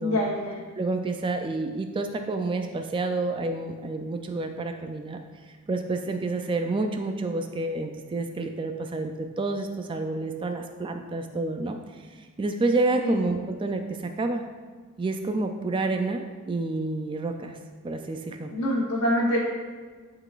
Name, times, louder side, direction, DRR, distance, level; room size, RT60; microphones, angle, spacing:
voice 1, 0.0-0.6 13.0-13.2 18.5-19.4, left 1 dB, 85° left, -5 dB, 0.9 m, -25 dB
voice 2, 0.8-5.2 5.4-9.1 9.4-14.4 15.0-17.6 17.8-18.5, right 2 dB, 20° right, 5 dB, 0.3 m, -29 dB
11.0 x 3.9 x 2.4 m, 1.4 s
head